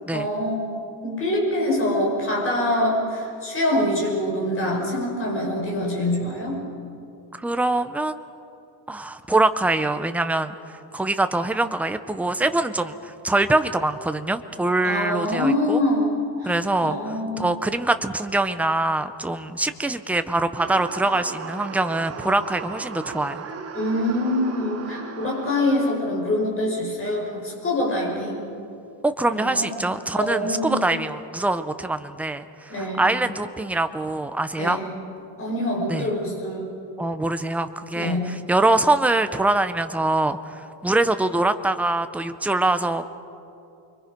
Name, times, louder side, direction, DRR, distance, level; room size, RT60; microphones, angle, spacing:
voice 1, 0.1-0.6 1.0-6.6 14.8-16.5 16.8-17.5 23.7-28.4 29.3-29.7 30.1-30.8 32.7-33.0 34.6-34.8 35.4-36.6 37.9-38.2, left 1 dB, 25° left, -3 dB, 5.6 m, -25 dB
voice 2, 7.4-8.2 8.9-10.6 10.9-15.8 16.4-23.5 29.0-34.8 35.9-36.1 37.0-43.1, right 2 dB, 5° right, 9 dB, 0.4 m, -24 dB
sound 1, 20.6-26.1, right 6 dB, 30° right, 1.2 m, -37 dB
29.0 x 23.0 x 5.2 m, 2.7 s
cardioid pair, 160°, 49 cm